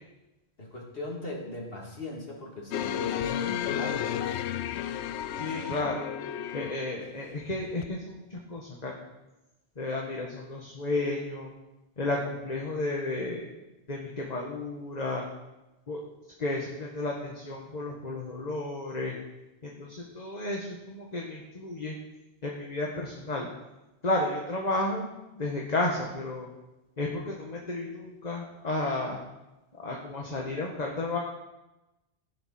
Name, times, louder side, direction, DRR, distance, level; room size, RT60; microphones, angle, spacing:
voice 1, 0.6-4.1 5.3-5.7, left 2 dB, 55° left, -2 dB, 3.2 m, -39 dB
sound 1, 2.7-7.0 7.8-7.9, left 10 dB, 80° left, 0.9 m, -32 dB
voice 2, 5.3-6.1 6.5-9.0 9.8-11.5 12.0-13.5 13.9-15.2 15.9-16.1 16.4-19.1 19.6-22.0 22.4-23.5 24.0-26.5 27.0-29.2 29.7-31.2, left 2 dB, 40° left, -1 dB, 1.6 m, -32 dB
15.5 x 11.0 x 4.4 m, 0.99 s
omnidirectional pair, 1.1 m